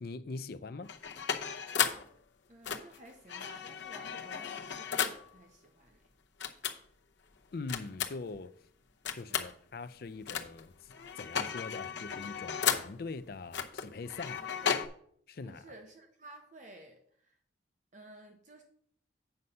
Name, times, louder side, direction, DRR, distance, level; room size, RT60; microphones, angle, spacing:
voice 1, 0.0-0.9 7.5-8.5 9.1-14.5 15.3-15.7, left 3 dB, 55° left, 0.4 m, -42 dB
sound 1, 0.8-2.1 2.6-5.3 6.4-6.8 7.7-8.3 9.1-9.5 10.3-10.7 10.9-13.0 13.5-14.9, left 7 dB, 75° left, 0.8 m, -34 dB
voice 2, 2.5-6.0 9.3-9.5 14.5-14.8 15.4-17.4 17.9-18.6, right 2 dB, 40° right, 0.9 m, -54 dB
8.0 x 5.5 x 5.4 m
head